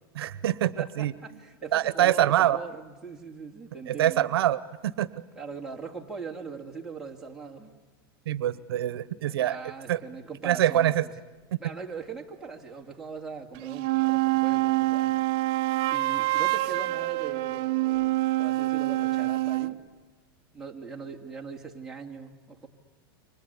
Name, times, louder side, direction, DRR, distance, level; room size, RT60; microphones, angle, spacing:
voice 1, 0.1-1.1 1.7-2.6 3.9-5.1 8.3-9.6 9.9-10.0 10.4-11.0, right 12 dB, 85° right, 17 dB, 0.9 m, -25 dB
voice 2, 0.7-4.3 5.3-7.8 9.1-11.1 11.6-15.3 15.9-19.8 20.5-22.7, right 5 dB, 5° right, -2 dB, 2.5 m, -40 dB
sound 1, 13.5-19.7, right 19 dB, 50° right, 0.8 m, -26 dB
29.0 x 24.5 x 8.3 m, 1.3 s
supercardioid pair, 140°, 12 cm